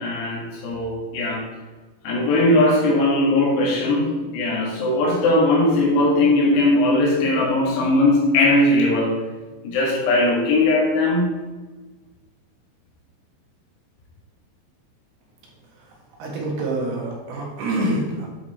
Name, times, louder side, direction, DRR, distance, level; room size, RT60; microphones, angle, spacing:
voice 1, 0.0-1.5 2.0-9.3 9.6-11.3, left 2 dB, 80° left, -2 dB, 4.0 m, -19 dB
voice 2, 16.2-18.3, right 1 dB, 70° right, -2 dB, 3.5 m, -26 dB
10.0 x 4.8 x 4.3 m, 1.2 s
omnidirectional pair, 4.8 m